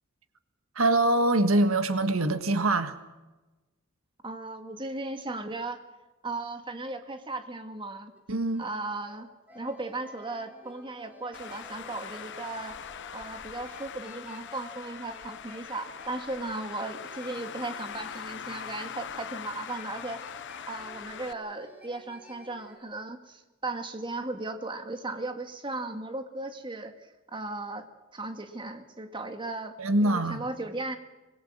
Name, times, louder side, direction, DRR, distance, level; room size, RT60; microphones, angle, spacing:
voice 1, 0.7-3.0 8.3-8.6 29.8-30.5, right 2 dB, 85° right, 1.6 m, -24 dB
voice 2, 4.2-5.8 6.2-8.1 8.6-9.3 9.5-12.8 13.1-20.2 20.7-27.9 28.1-31.0, right 2 dB, 25° right, 1.9 m, -36 dB
sound 1, 8.2-8.3 8.5-8.6 9.0-9.1 9.5-22.8, left 1 dB, 10° right, 4.3 m, -52 dB
Traffic noise roadway noise, 11.3-21.3, left 8 dB, 60° left, 0.9 m, -42 dB
24.5 x 21.0 x 6.3 m
head